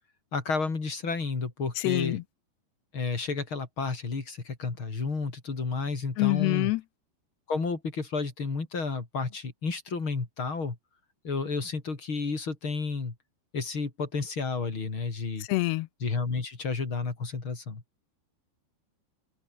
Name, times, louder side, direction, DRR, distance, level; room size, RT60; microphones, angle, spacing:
voice 1, 0.3-2.2 2.9-6.7 7.5-10.8 11.2-13.1 13.5-15.5 16.0-17.8, left 4 dB, 30° left, 4.2 m, -31 dB
voice 2, 1.8-2.2 6.2-6.8 15.5-15.9, left 20 dB, 85° left, 2.8 m, -25 dB
open air
omnidirectional pair, 4.8 m